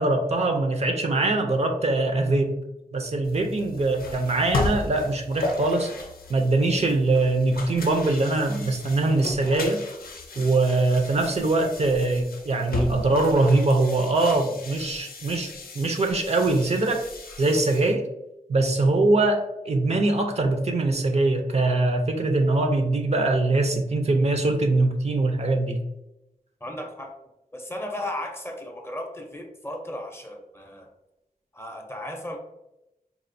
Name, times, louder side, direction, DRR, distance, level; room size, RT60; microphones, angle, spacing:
voice 1, 0.0-2.6 2.9-5.9 6.3-9.8 10.4-15.5 15.8-17.0 17.4-18.0 18.5-25.8, right 2 dB, 45° right, 4 dB, 0.4 m, -22 dB
sound 1, 3.2-17.9, left 2 dB, 80° left, 0.5 m, -35 dB
voice 2, 26.6-27.2 27.5-30.9 31.5-32.4, left 1 dB, 15° left, 2 dB, 0.5 m, -35 dB
4.1 x 2.4 x 2.5 m, 0.92 s
wide cardioid pair, 90°, 15 cm